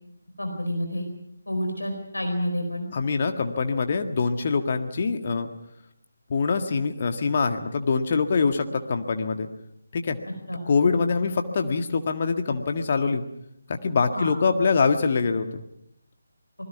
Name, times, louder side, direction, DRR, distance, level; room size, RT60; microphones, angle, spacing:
voice 1, 0.4-1.1 1.5-2.9 10.5-10.6 14.1-14.3, equal, 75° left, 4 dB, 4.6 m, -29 dB
voice 2, 2.9-5.5 6.3-9.5 9.9-10.2 10.7-13.2 13.7-15.6, left 4 dB, 40° left, 6 dB, 1.8 m, -24 dB
26.5 x 20.5 x 6.0 m, 0.77 s
figure-of-eight pair, 150°, 0 cm